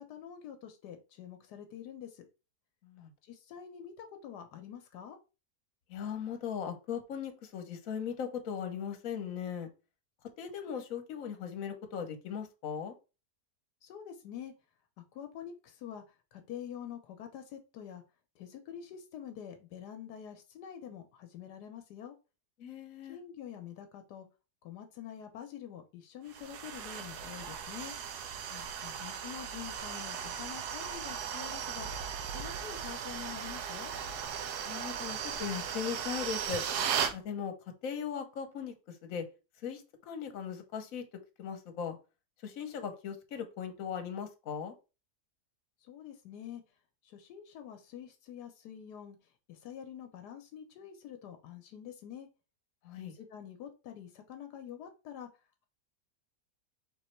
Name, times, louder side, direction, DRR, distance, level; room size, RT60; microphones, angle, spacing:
voice 1, 0.0-2.2 3.2-5.2 13.8-14.5 15.0-18.0 18.3-22.1 23.1-24.3 24.6-28.0 29.0-31.9 32.3-33.9 45.8-46.6 47.0-52.3 53.0-55.3, left 9 dB, 85° left, 7 dB, 1.3 m, -46 dB
voice 2, 5.9-9.7 10.4-12.9 22.6-23.2 28.5-29.0 34.6-36.7 37.1-37.5 37.8-39.3 39.6-41.0 41.4-42.0 42.4-44.7 52.8-53.1, left 7 dB, 60° left, 6 dB, 1.2 m, -38 dB
sound 1, 26.3-37.2, right 8 dB, 80° right, 1.2 m, -37 dB
3.9 x 3.1 x 4.4 m, 0.30 s
omnidirectional pair, 1.7 m